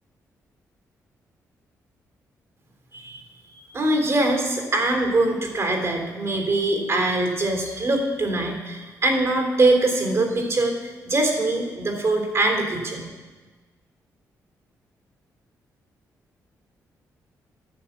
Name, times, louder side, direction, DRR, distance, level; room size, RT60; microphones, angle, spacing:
voice 1, 3.7-13.0, right 2 dB, 50° right, 3 dB, 3.4 m, -23 dB
10.5 x 7.6 x 7.2 m, 1.3 s
cardioid pair, 65°, 7 cm